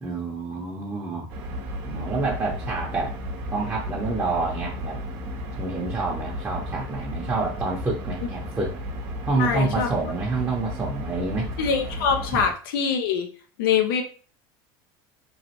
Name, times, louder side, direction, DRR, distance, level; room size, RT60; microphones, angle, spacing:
voice 1, 0.0-1.3 1.9-3.1 3.5-5.0 5.6-8.7 9.2-11.5 12.3-12.4, right 3 dB, 15° right, -4 dB, 0.7 m, -28 dB
sound 1, 1.3-12.5, equal, 65° right, 0.7 m, -34 dB
voice 2, 9.4-9.9 11.6-13.3 13.6-14.0, left 6 dB, 75° left, 4 dB, 0.5 m, -23 dB
3.0 x 2.4 x 2.9 m, 0.39 s
hypercardioid pair, 95°, 12 cm